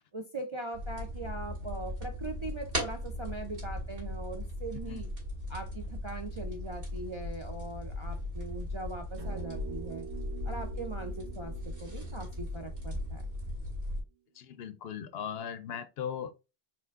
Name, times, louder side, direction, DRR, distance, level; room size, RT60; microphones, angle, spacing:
voice 1, 0.1-5.1 5.5-10.1 10.4-13.2, right 2 dB, 40° right, 0.4 m, -41 dB
sound 1, 0.7-14.0, left 1 dB, 55° right, 2.4 m, -38 dB
sound 2, 9.2-13.7, right 8 dB, 80° right, 1.4 m, -47 dB
voice 2, 14.3-16.3, left 8 dB, 70° left, 0.8 m, -38 dB
4.5 x 3.7 x 2.4 m
omnidirectional pair, 1.1 m